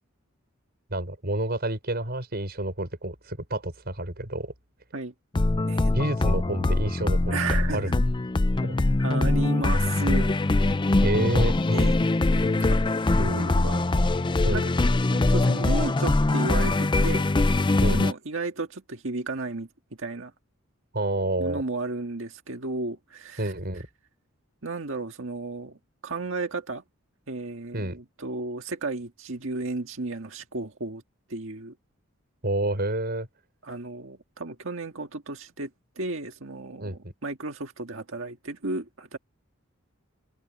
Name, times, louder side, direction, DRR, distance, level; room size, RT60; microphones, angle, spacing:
voice 1, 0.9-4.5 5.9-7.4 7.7-7.9 8.6-8.9 11.0-11.5 14.4-14.7 17.8-18.0 20.9-21.6 23.4-23.9 27.7-28.0 32.4-33.3 36.8-37.1, right 1 dB, 50° right, 5.6 m, -29 dB
sound 1, 5.3-18.1, left 2 dB, 25° left, 0.5 m, -23 dB
voice 2, 7.3-8.0 9.0-10.3 11.7-11.9 12.3-12.8 13.2-13.9 14.5-14.7 15.1-17.3 17.9-19.7 20.0-20.3 21.4-23.5 24.6-25.8 26.0-26.8 27.3-31.0 31.3-31.7 33.6-35.7 36.0-39.2, right 3 dB, 70° right, 1.8 m, -33 dB
head